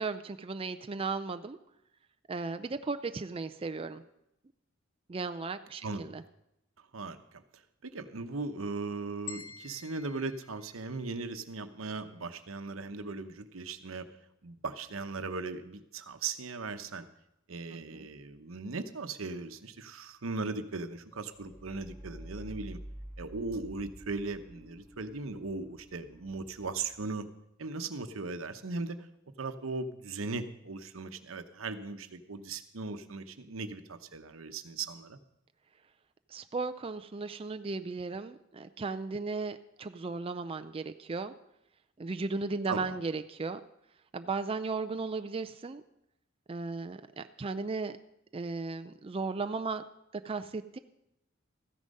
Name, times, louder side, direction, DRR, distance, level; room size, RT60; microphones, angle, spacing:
voice 1, 0.0-1.6 2.3-4.0 5.1-6.2 17.9-18.1 36.3-41.3 42.0-43.6 44.1-45.8 46.5-48.0 48.3-49.8 50.1-50.8, right 4 dB, 25° right, 9 dB, 0.4 m, -36 dB
voice 2, 6.8-14.1 14.4-17.1 17.5-22.8 23.2-27.3 27.6-29.1 29.4-35.2 42.7-43.0, right 3 dB, 85° right, 9 dB, 0.9 m, -38 dB
sound 1, 9.3-11.5, left 7 dB, 70° left, 1.5 m, -48 dB
sound 2, 21.1-26.9, right 1 dB, 10° left, 2.8 m, -49 dB
14.0 x 9.9 x 5.4 m, 0.84 s
head